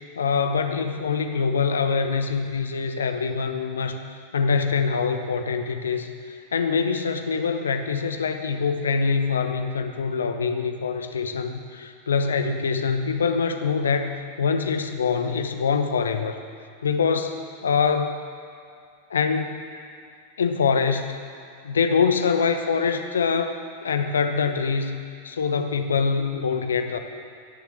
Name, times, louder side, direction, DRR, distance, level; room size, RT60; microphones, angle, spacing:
voice 1, 0.2-16.4 16.8-18.2 19.1-19.6 20.4-21.2 21.6-27.0, left 5 dB, 70° left, 7 dB, 1.0 m, -24 dB
17.5 x 7.1 x 7.5 m, 2.3 s
figure-of-eight pair, 90°, 0 cm